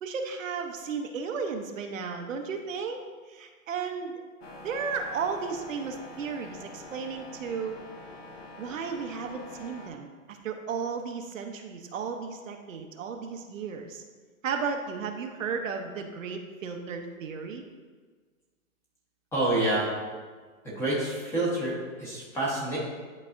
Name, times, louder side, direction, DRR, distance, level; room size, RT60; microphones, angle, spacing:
voice 1, 0.0-3.0 3.3-4.1 4.6-7.8 8.6-14.0 14.4-17.6, right 5 dB, 65° right, 4 dB, 0.8 m, -34 dB
sound 1, 4.4-9.9, left 1 dB, 45° left, 0.9 m, -45 dB
voice 2, 19.3-19.9 20.6-22.8, right 1 dB, 5° left, -7 dB, 1.0 m, -28 dB
10.5 x 4.1 x 2.5 m, 1.5 s
hypercardioid pair, 160°, 42 cm